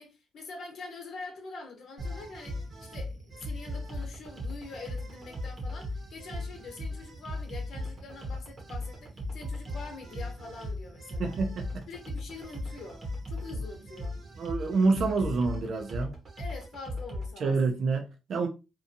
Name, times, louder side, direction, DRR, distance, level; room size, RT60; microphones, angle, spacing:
voice 1, 0.0-11.4 11.9-14.2 16.4-17.5, left 3 dB, 65° left, 0.9 m, -45 dB
sound 1, 2.0-17.3, left 1 dB, 40° right, 0.8 m, -38 dB
voice 2, 11.2-11.8 14.4-16.1 17.4-18.5, right 4 dB, 60° right, 0.5 m, -27 dB
2.6 x 2.3 x 2.6 m
cardioid pair, 90°, 0 cm